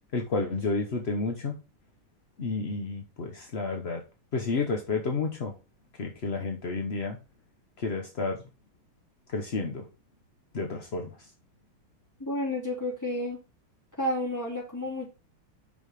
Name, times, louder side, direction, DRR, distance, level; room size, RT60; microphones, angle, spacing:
voice 1, 0.1-1.6 2.4-4.0 4.3-5.5 6.0-7.2 7.8-8.4 9.3-9.8 10.5-11.1, left 4 dB, 50° left, 2 dB, 0.8 m, -30 dB
voice 2, 12.2-13.4 14.0-15.1, left 1 dB, 10° left, -5 dB, 3.5 m, -31 dB
6.1 x 5.5 x 4.8 m, 0.30 s
omnidirectional pair, 2.3 m